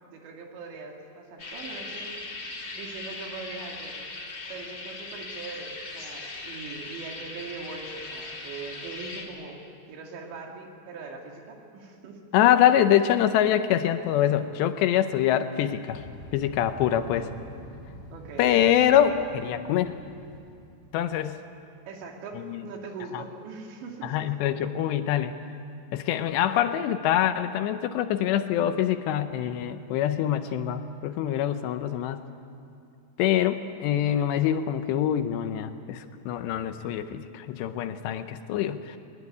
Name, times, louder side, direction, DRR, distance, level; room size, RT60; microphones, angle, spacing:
voice 1, 0.1-4.0 4.5-9.6 9.9-12.2 16.9-17.4 18.1-18.6 21.9-24.3, right 4 dB, 75° right, 1 dB, 4.7 m, -41 dB
sound 1, 1.4-9.2, left 3 dB, 30° left, 2.6 m, -39 dB
voice 2, 12.3-16.0 16.3-17.2 18.4-19.9 20.9-21.4 22.4-22.6 23.1-23.2 24.0-25.3 25.9-32.2 33.2-39.0, left 10 dB, 80° left, 9 dB, 2.9 m, -24 dB
sound 2, 15.9-21.3, left 1 dB, 5° left, 5.2 m, -47 dB
22.5 x 20.5 x 9.6 m, 2.5 s
omnidirectional pair, 5.2 m